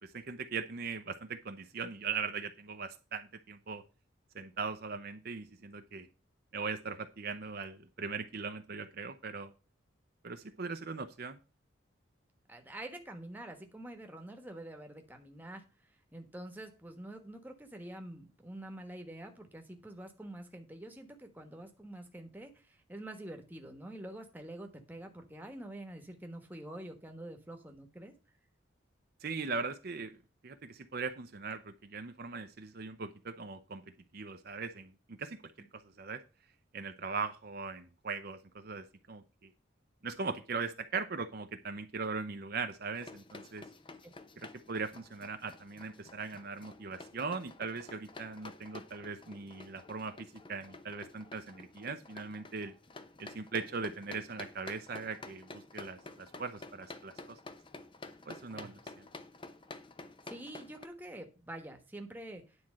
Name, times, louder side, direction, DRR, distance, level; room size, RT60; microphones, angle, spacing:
voice 1, 0.0-3.8 4.3-6.1 6.5-9.5 10.2-11.4 29.2-30.2 30.4-33.8 34.1-35.4 35.7-36.2 36.7-39.5 40.0-43.6 44.4-52.7 53.2-57.4 58.3-59.1, right 4 dB, 50° right, 8 dB, 0.7 m, -40 dB
voice 2, 12.5-15.6 16.1-28.1 44.0-44.1 58.5-58.7 60.3-62.4, right 1 dB, 10° right, 5 dB, 1.2 m, -46 dB
sound 1, 42.9-60.9, left 3 dB, 25° left, 0.7 m, -50 dB
9.7 x 4.3 x 7.5 m, 0.34 s
head